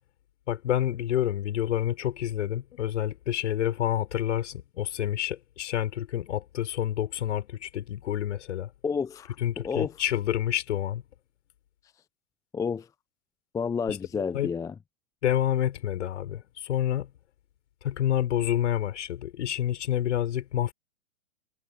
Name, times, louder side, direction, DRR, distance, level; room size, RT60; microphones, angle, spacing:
voice 1, 0.5-8.7 9.4-11.0 13.9-14.0 14.3-14.5 15.2-17.1 17.8-20.7, left 11 dB, 60° left, 6.0 m, -28 dB
voice 2, 8.8-9.9 12.5-12.9 13.5-14.7, left 6 dB, 10° left, 0.7 m, -30 dB
figure-of-eight pair, 115°, 41 cm